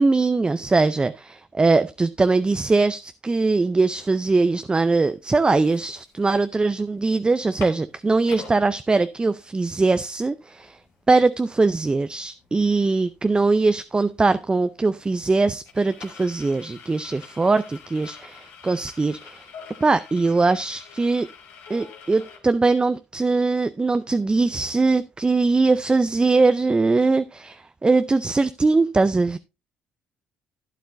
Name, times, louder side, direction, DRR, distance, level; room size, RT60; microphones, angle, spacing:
voice 1, 0.0-10.8 11.1-19.4 19.8-21.3 21.7-29.4, right 3 dB, 20° right, 0.5 m, -21 dB
sound 1, 4.9-5.0 5.4-6.6 7.0-7.1 7.3-8.6 9.1-9.2 9.5-22.4, left 6 dB, 75° left, 2.2 m, -45 dB
11.5 x 9.3 x 2.6 m
hypercardioid pair, 60°, 4 cm